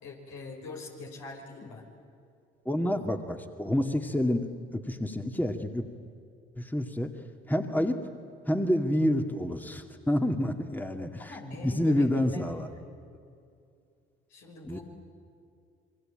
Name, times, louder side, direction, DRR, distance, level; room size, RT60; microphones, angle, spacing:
voice 1, 0.0-1.8 11.2-12.4 14.3-14.8, left 3 dB, 70° left, 0 dB, 6.0 m, -43 dB
voice 2, 2.7-5.9 6.6-7.1 7.5-8.0 8.5-11.4 11.6-12.7 14.7-14.8, left 1 dB, 5° left, 5 dB, 2.2 m, -28 dB
28.0 x 23.5 x 9.0 m, 2.5 s
hypercardioid pair, 50°, 29 cm